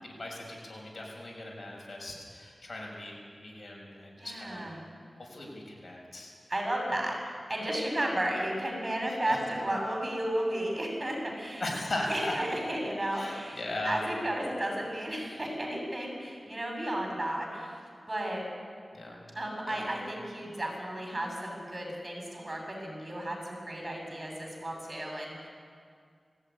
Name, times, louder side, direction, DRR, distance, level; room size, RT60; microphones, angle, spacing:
voice 1, 0.0-3.1 3.4-4.7 5.2-6.3 9.1-9.4 11.6-12.3 13.1-14.0 18.9-19.2 19.7-19.8, left 1 dB, 60° left, -1 dB, 6.6 m, -38 dB
voice 2, 4.2-4.8 6.5-11.6 12.1-17.7 18.1-18.4 19.3-25.5, right 1 dB, 40° right, 1 dB, 7.5 m, -33 dB
20.0 x 16.0 x 9.8 m, 2.1 s
cardioid pair, 40°, 0 cm